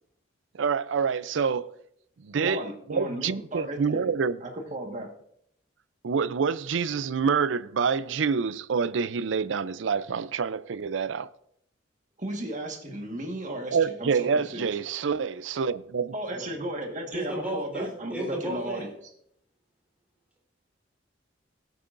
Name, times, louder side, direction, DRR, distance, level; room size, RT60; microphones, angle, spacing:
voice 1, 0.6-1.7 2.2-2.6 2.9-4.4 6.0-11.3 13.7-16.1, right 6 dB, 75° right, 0.5 m, -27 dB
voice 2, 2.4-4.1 4.4-5.1 12.2-14.7 16.1-18.9, right 1 dB, 40° right, 1.6 m, -35 dB
voice 3, 17.1-17.9 18.1-18.9, right 1 dB, 5° right, 3.5 m, -33 dB
18.5 x 8.4 x 2.6 m
head